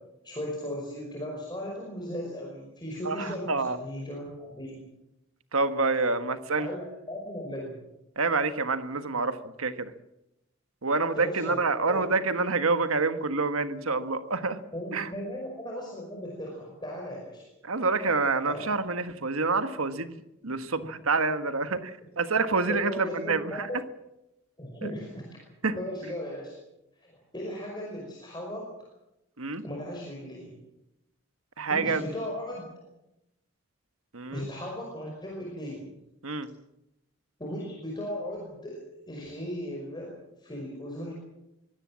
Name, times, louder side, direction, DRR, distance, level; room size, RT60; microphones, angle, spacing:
voice 1, 0.2-4.8 6.6-7.7 11.1-12.0 14.7-17.5 18.5-18.8 20.7-20.9 22.7-23.8 24.6-25.3 25.7-26.5 27.0-28.7 29.6-30.6 31.7-32.7 34.3-35.9 37.4-38.8 39.1-41.1, equal, 20° left, -1 dB, 5.3 m, -37 dB
voice 2, 3.0-3.8 5.5-6.7 8.2-9.9 10.8-14.6 14.9-15.1 17.6-20.2 20.4-23.7 25.6-25.8 29.4-29.6 31.6-32.0 34.1-34.5 36.2-36.5, right 3 dB, 85° right, 10 dB, 1.5 m, -27 dB
24.0 x 17.5 x 7.5 m, 0.89 s
head